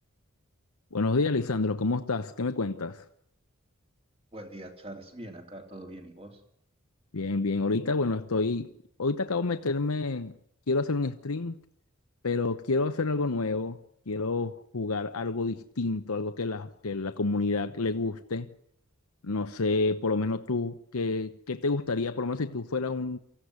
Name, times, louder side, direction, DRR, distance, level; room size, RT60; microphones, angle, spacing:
voice 1, 0.9-3.0 7.1-8.7 9.0-10.4 10.7-11.6 12.2-13.8 14.1-18.5 19.2-23.2, left 3 dB, 85° left, 0.9 m, -29 dB
voice 2, 4.3-6.4, right 1 dB, 25° right, 3.1 m, -43 dB
25.0 x 15.0 x 9.5 m
head